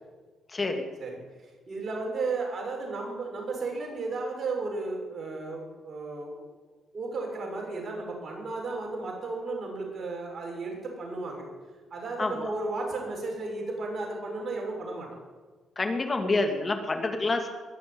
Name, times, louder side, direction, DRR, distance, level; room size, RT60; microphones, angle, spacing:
voice 1, 0.5-0.9 12.2-12.5 15.8-17.5, left 3 dB, 30° left, 5 dB, 2.3 m, -28 dB
voice 2, 1.7-6.5 6.9-11.4 11.9-15.1, right 3 dB, 45° right, 0 dB, 6.3 m, -34 dB
21.5 x 7.4 x 8.7 m, 1.4 s
cardioid pair, 90°, 0 cm